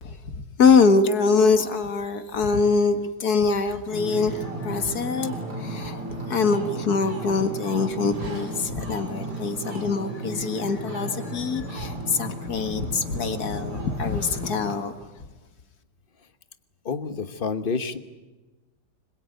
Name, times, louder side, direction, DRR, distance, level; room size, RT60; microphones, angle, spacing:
voice 1, 0.0-6.0 6.3-14.9, left 4 dB, 60° left, 9 dB, 2.2 m, -24 dB
Ocean, 3.9-14.7, right 2 dB, 60° right, 5.4 m, -34 dB
voice 2, 16.8-18.0, left 5 dB, 35° left, 11 dB, 1.2 m, -28 dB
25.0 x 21.5 x 9.3 m, 1.2 s
omnidirectional pair, 1.9 m